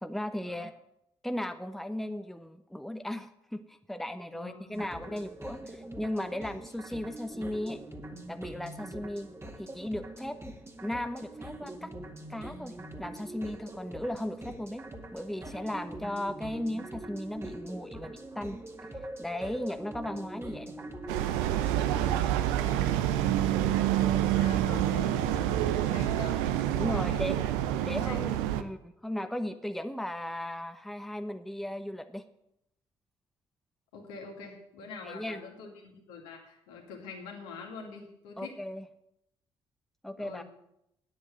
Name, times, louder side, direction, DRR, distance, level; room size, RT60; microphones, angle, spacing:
voice 1, 0.0-0.7 1.2-7.8 8.3-9.3 9.6-10.4 10.8-11.9 12.3-14.8 15.1-18.6 19.2-20.9 22.6-22.7 26.7-27.3 27.8-32.2 35.0-35.4 38.4-38.8 40.0-40.4, left 1 dB, ahead, 8 dB, 1.0 m, -36 dB
voice 2, 4.3-5.2 6.2-6.4 21.7-23.0 24.0-26.4 26.9-27.4 27.8-28.2 33.9-38.6 40.2-40.4, left 5 dB, 70° left, 0 dB, 2.4 m, -45 dB
sound 1, 4.7-22.2, right 1 dB, 20° right, 2.0 m, -43 dB
sound 2, 21.1-28.6, right 12 dB, 70° right, 0.7 m, -27 dB
9.7 x 7.9 x 9.0 m, 0.79 s
figure-of-eight pair, 40°, 14 cm